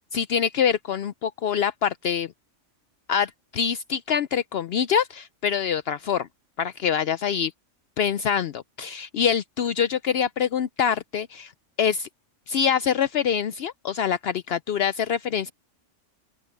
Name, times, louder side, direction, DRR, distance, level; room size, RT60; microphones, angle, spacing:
voice 1, 0.1-2.3 3.1-6.3 6.6-7.5 8.0-11.5 11.8-12.1 12.5-15.5, left 8 dB, 65° left, 0.7 m, -25 dB
open air
omnidirectional pair, 1.2 m